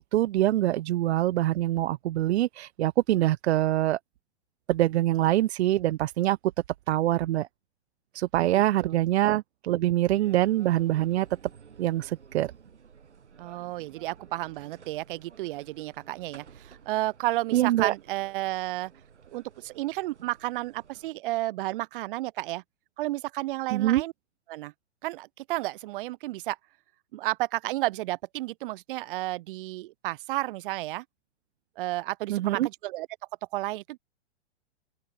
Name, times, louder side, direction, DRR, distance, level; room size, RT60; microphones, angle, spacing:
voice 1, 0.0-4.0 4.7-6.4 6.9-7.5 8.2-11.3 11.8-12.5 17.5-17.9 23.7-24.0 32.3-32.7, right 14 dB, 70° right, 0.5 m, -24 dB
voice 2, 8.4-9.0 13.4-18.9 19.3-22.6 23.0-24.1 24.5-24.7 25.0-26.6 27.1-31.0 31.8-33.1 33.5-34.0, right 18 dB, 50° right, 0.9 m, -32 dB
sound 1, 10.1-21.1, right 6 dB, 85° right, 6.3 m, -53 dB
open air
hypercardioid pair, 120°, 34 cm